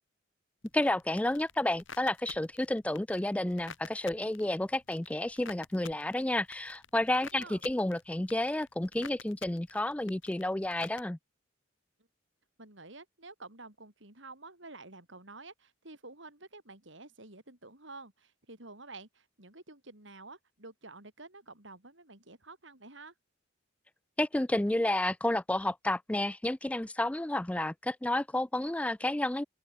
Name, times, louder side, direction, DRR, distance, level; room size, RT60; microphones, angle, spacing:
sound 1, 0.6-11.0, left 6 dB, 70° left, 3.2 m, -51 dB
voice 1, 0.7-11.2 24.2-29.4, left 1 dB, 5° left, 0.3 m, -31 dB
voice 2, 12.6-23.1, right 3 dB, 65° right, 4.9 m, -50 dB
open air
head